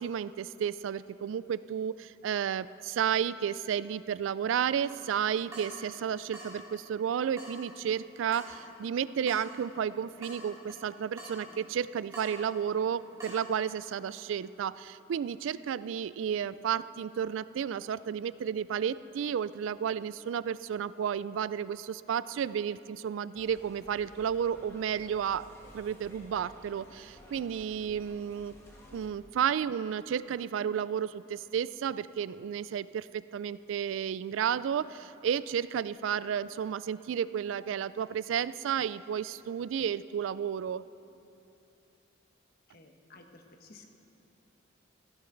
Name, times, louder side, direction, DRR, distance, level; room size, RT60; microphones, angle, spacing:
voice 1, 0.0-25.5 25.7-28.5 28.9-40.8, right 8 dB, 75° right, 17 dB, 0.3 m, -32 dB
Water tap faucet / Drip, 4.9-13.5, equal, 15° right, 3.1 m, -49 dB
sound 1, 23.3-29.1, equal, 15° left, 1.8 m, -54 dB
voice 2, 42.7-43.9, left 3 dB, 50° left, 4 dB, 1.2 m, -54 dB
16.5 x 15.0 x 3.9 m, 2.8 s
head